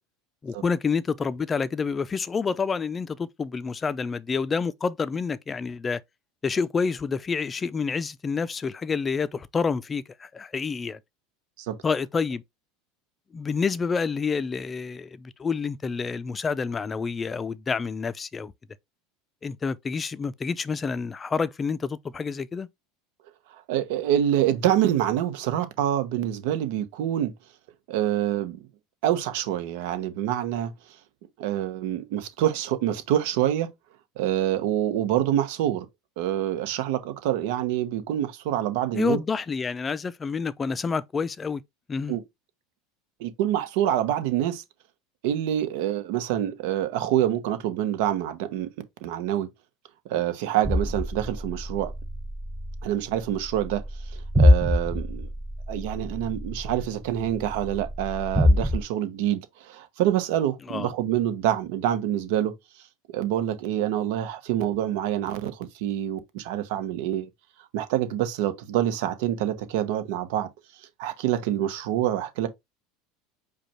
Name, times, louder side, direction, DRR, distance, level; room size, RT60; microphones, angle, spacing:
voice 1, 0.4-6.0 6.4-11.0 11.8-12.4 13.3-18.5 19.4-22.7 38.9-41.6 41.9-42.2 60.7-60.9, left 5 dB, 25° left, 0.4 m, -28 dB
voice 2, 23.7-27.3 27.9-28.7 29.0-30.7 31.4-33.7 34.2-35.9 36.2-39.2 42.1-42.2 43.2-44.6 45.2-48.7 49.0-49.5 50.0-51.9 52.8-53.8 54.1-55.3 55.7-62.5 63.1-67.3 67.7-70.5 71.0-72.5, right 11 dB, 70° right, 0.9 m, -26 dB
sound 1, 50.6-58.8, left 1 dB, 10° right, 0.9 m, -25 dB
5.0 x 2.3 x 4.3 m
supercardioid pair, 105°, 0 cm